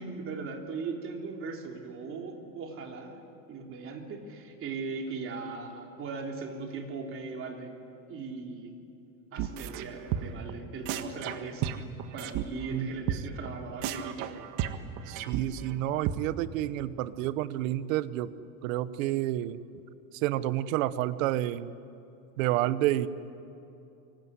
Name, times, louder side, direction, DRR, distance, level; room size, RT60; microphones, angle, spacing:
voice 1, 0.0-7.8 8.1-8.7 9.3-11.8 12.1-14.4, right 4 dB, 30° right, 3 dB, 3.3 m, -39 dB
sound 1, 9.4-9.9 10.1-10.5 10.9-12.4 12.7-12.8 13.1-13.2 13.5-13.6 13.8-15.8 16.1-16.2, right 11 dB, 45° right, 1.6 m, -33 dB
voice 2, 15.1-18.3 18.6-19.6 20.1-21.7 22.4-23.1, right 14 dB, 65° right, 15 dB, 1.2 m, -29 dB
24.5 x 23.5 x 9.8 m, 2.8 s
supercardioid pair, 150°, 42 cm